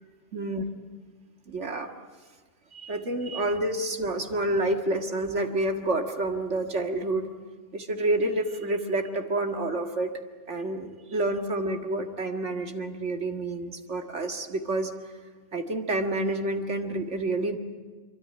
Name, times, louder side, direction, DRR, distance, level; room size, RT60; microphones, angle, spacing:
voice 1, 0.3-0.6 1.5-1.9 2.7-7.3 7.7-10.2 10.5-14.9 15.5-17.6, right 2 dB, 70° right, 5 dB, 2.2 m, -28 dB
26.0 x 23.5 x 9.8 m, 1.4 s
omnidirectional pair, 1.2 m